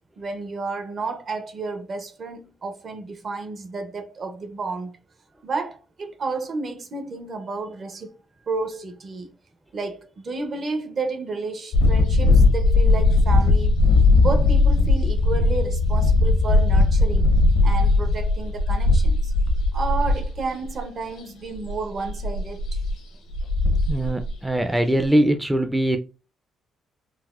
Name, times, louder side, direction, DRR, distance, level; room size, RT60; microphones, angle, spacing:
voice 1, 0.2-4.9 5.4-8.1 8.5-9.3 9.7-13.8 14.2-19.3 19.7-22.8, right 3 dB, 50° right, 0.7 m, -31 dB
sound 1, 11.7-20.4 20.7-20.8 21.7-21.8 22.1-22.9 23.3-24.3, left 2 dB, 85° left, 0.7 m, -18 dB
voice 2, 23.9-26.0, right 1 dB, 10° right, 0.3 m, -21 dB
4.0 x 2.1 x 2.4 m
cardioid pair, 90°, 0 cm